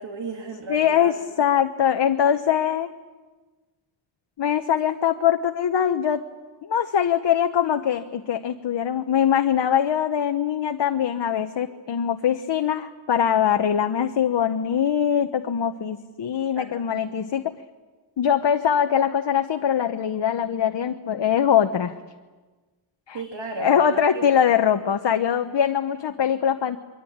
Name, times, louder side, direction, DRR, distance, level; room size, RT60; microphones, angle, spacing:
voice 1, 0.0-1.1 16.6-17.0 23.1-24.3, right 3 dB, 65° right, 3 dB, 2.9 m, -34 dB
voice 2, 0.7-2.9 4.4-6.2 6.6-17.4 18.2-21.9 23.1-23.2 23.6-26.8, left 8 dB, 60° left, 7 dB, 1.1 m, -22 dB
28.0 x 23.5 x 8.7 m, 1.3 s
wide cardioid pair, 130°, 48 cm